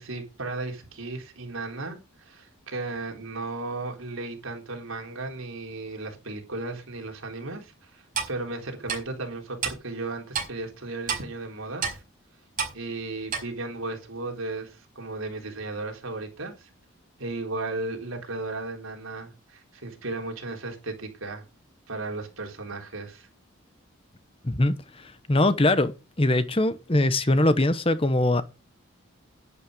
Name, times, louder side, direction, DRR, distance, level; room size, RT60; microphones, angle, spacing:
voice 1, 0.0-12.0 12.7-16.7 17.2-21.4 21.9-23.3, right 2 dB, 80° right, 4.0 m, -35 dB
Clock, 8.1-8.3 8.9-9.0 9.6-9.7 10.3-10.5 11.1-11.2 11.8-12.0 12.6-12.7 13.3-13.4, right 6 dB, 40° right, 5.1 m, -28 dB
voice 2, 24.4-25.9 26.2-28.4, left 1 dB, 25° left, 1.0 m, -22 dB
11.0 x 10.5 x 5.2 m
head